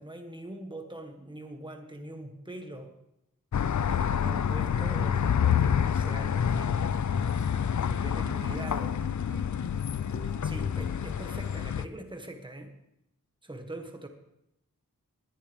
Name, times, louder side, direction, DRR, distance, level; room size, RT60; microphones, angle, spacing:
voice 1, 0.0-2.9 3.9-7.3 7.8-9.0 10.4-12.7 13.4-14.1, right 1 dB, 15° right, 4 dB, 1.5 m, -43 dB
sound 1, 3.5-11.9, left 8 dB, 60° left, 0.5 m, -28 dB
sound 2, 6.5-8.4 9.9-11.4, right 3 dB, 35° left, 3.0 m, -53 dB
voice 2, 8.2-9.8, right 4 dB, 80° right, 3 dB, 1.8 m, -47 dB
19.0 x 10.0 x 3.5 m, 0.82 s
wide cardioid pair, 45°, 34 cm